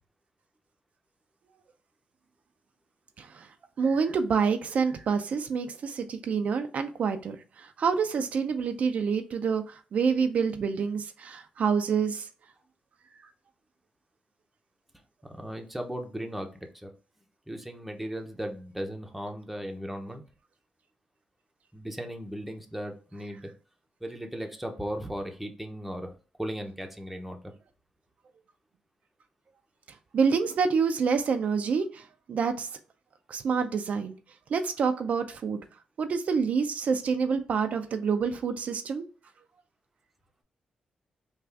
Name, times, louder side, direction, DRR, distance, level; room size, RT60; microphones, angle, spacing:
voice 1, 3.2-3.5 3.8-12.3 30.1-32.7 33.3-34.2 34.5-35.6 36.0-39.1, right 5 dB, 65° right, 0.4 m, -27 dB
voice 2, 15.2-16.5 16.7-16.9 17.5-20.2 21.7-23.5 24.0-26.1 26.4-27.4, equal, 5° right, 0.8 m, -36 dB
3.5 x 2.4 x 3.3 m
cardioid pair, 70°, 3 cm